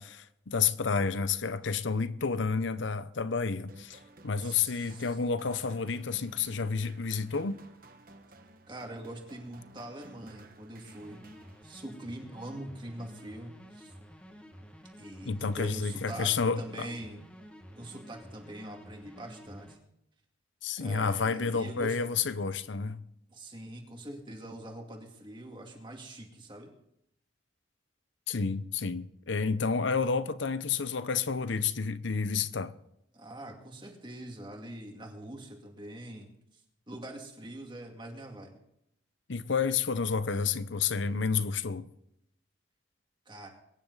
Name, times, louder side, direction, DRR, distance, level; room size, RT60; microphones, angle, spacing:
voice 1, 0.0-7.6 15.2-16.6 20.6-23.0 28.3-32.7 39.3-41.9, left 5 dB, 75° left, 0.7 m, -30 dB
sound 1, 3.7-12.1, right 2 dB, 45° right, 1.2 m, -55 dB
voice 2, 4.4-5.2 8.7-11.2 11.6-13.9 15.0-17.2 17.8-19.8 20.8-22.0 23.3-26.7 33.1-36.6 36.9-38.6 43.3-43.5, right 1 dB, 25° right, 2.2 m, -43 dB
sound 2, 10.9-19.8, equal, 5° left, 1.8 m, -51 dB
22.5 x 10.5 x 4.0 m
head